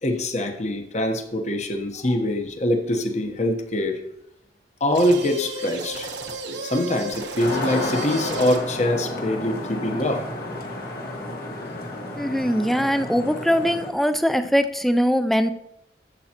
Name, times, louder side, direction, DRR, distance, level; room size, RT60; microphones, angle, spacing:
voice 1, 0.0-4.0 4.8-6.1 6.6-10.2, left 1 dB, 40° left, 4 dB, 1.0 m, -24 dB
sound 1, 4.9-8.8, right 2 dB, 85° right, 1.1 m, -33 dB
sound 2, 7.4-13.9, left 2 dB, 55° left, 1.8 m, -32 dB
voice 2, 12.2-15.5, equal, ahead, 9 dB, 0.4 m, -21 dB
12.5 x 7.6 x 2.9 m, 0.83 s
head